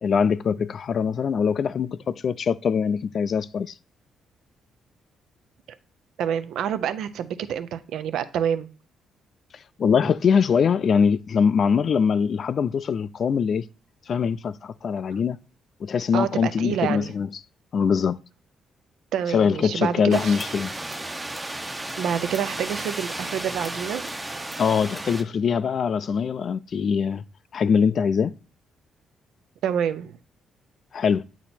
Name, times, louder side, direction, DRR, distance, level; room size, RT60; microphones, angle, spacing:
voice 1, 0.0-3.7 9.8-13.7 14.1-15.4 15.8-17.3 17.7-18.2 19.3-20.7 24.6-27.2 27.5-28.3 30.9-31.2, left 6 dB, 55° left, 0.3 m, -22 dB
voice 2, 6.2-8.7 16.1-17.1 19.1-20.4 22.0-24.0 29.6-30.2, right 9 dB, 80° right, 0.5 m, -27 dB
sound 1, 20.1-25.2, right 1 dB, 15° right, 0.7 m, -33 dB
8.3 x 2.9 x 4.2 m
cardioid pair, 90°, 0 cm